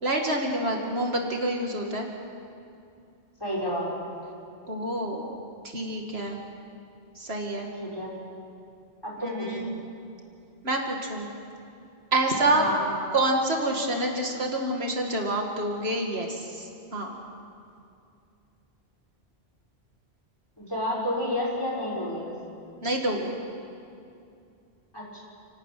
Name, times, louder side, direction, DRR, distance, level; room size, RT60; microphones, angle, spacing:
voice 1, 0.0-2.1 4.7-5.4 5.6-6.4 7.2-7.7 9.2-9.7 10.6-11.3 12.1-12.6 13.1-17.1 22.8-23.4, right 1 dB, 70° right, 1 dB, 2.3 m, -27 dB
voice 2, 3.4-3.9 7.8-8.1 9.0-9.7 12.5-12.8 20.6-22.3 24.9-25.2, left 1 dB, 20° left, -4 dB, 6.1 m, -30 dB
30.0 x 12.5 x 9.2 m, 2.5 s
omnidirectional pair, 1.1 m